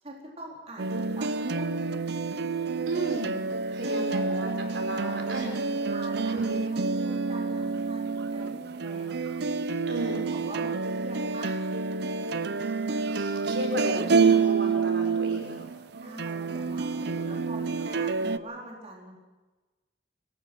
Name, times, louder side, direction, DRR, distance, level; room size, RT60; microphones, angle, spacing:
voice 1, 0.0-1.7 3.8-4.0 4.9-9.1 10.3-11.7 16.0-19.1, right 1 dB, 35° right, -2 dB, 4.2 m, -43 dB
sound 1, 0.8-18.4, right 4 dB, 60° right, 0.6 m, -28 dB
voice 2, 2.9-3.3 3.7-5.5 6.3-6.6 9.9-10.3 13.1-15.6, right 1 dB, 80° right, 3 dB, 4.9 m, -34 dB
24.0 x 19.0 x 6.2 m, 1.2 s
head